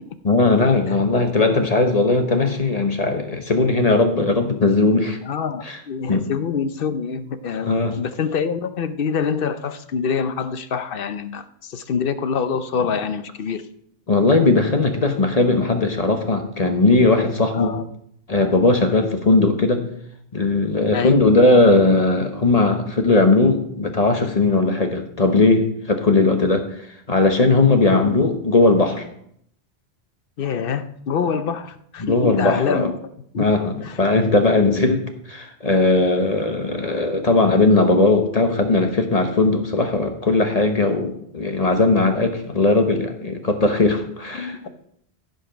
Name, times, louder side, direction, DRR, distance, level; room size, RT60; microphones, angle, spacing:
voice 1, 0.2-5.2 5.6-5.8 6.1-6.3 7.6-7.9 14.1-17.8 18.3-19.9 20.3-26.8 27.1-29.0 32.0-32.9 33.3-44.7, left 3 dB, 40° left, 6 dB, 1.0 m, -18 dB
voice 2, 5.2-13.6 17.5-17.8 20.9-21.2 30.4-32.9 33.3-33.5 33.8-34.0 44.3-44.7, left 6 dB, 60° left, 11 dB, 0.8 m, -25 dB
15.5 x 5.3 x 5.1 m, 0.70 s
omnidirectional pair, 1.1 m